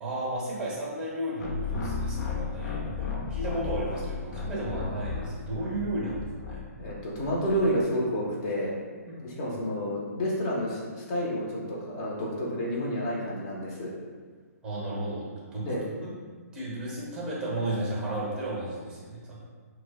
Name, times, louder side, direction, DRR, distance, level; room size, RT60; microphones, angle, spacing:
voice 1, 0.0-6.6 9.1-9.2 14.6-15.3 15.5-15.7 16.0-16.1 16.5-19.4, right 1 dB, 5° right, -6 dB, 0.8 m, -33 dB
sound 1, 1.4-7.8, left 5 dB, 80° left, 0.7 m, -35 dB
voice 2, 6.8-8.8 9.2-13.9 15.6-15.8, equal, 25° left, -4 dB, 0.7 m, -30 dB
5.0 x 2.1 x 2.3 m, 1.6 s
hypercardioid pair, 165°, 9 cm